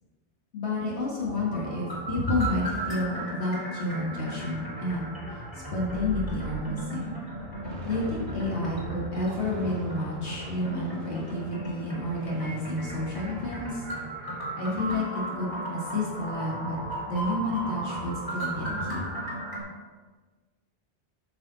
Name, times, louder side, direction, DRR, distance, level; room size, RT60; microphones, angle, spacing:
voice 1, 0.5-5.1 5.5-7.2 7.9-13.8 14.5-16.8 17.1-19.1, left 1 dB, 65° left, -5 dB, 1.8 m, -30 dB
sound 1, 1.2-19.6, right 1 dB, 25° left, 2.3 m, -36 dB
sound 2, 5.9-6.9 7.3-14.3, equal, 70° right, 1.5 m, -41 dB
8.6 x 6.2 x 3.9 m, 1.3 s
omnidirectional pair, 1.2 m